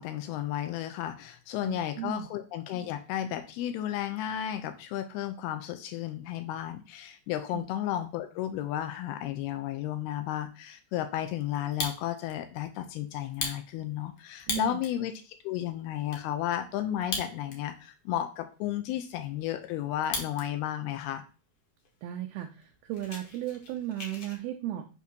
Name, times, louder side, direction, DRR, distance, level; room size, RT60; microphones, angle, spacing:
voice 1, 0.0-21.2, left 11 dB, 90° left, 8 dB, 2.3 m, -33 dB
voice 2, 1.6-2.3 7.5-7.6 14.5-14.8 22.0-24.9, right 13 dB, 85° right, 4 dB, 2.1 m, -35 dB
Fire, 11.5-12.3 12.7-12.8 13.3-15.0 15.5-15.6 15.8-16.2 16.9-17.8 18.1-18.2 18.7-20.5 20.8-21.2 21.8-21.9 22.1-22.3 22.6-24.4, left 3 dB, 70° left, 1.3 m, -37 dB
8.3 x 2.8 x 6.1 m, 0.32 s
omnidirectional pair, 5.2 m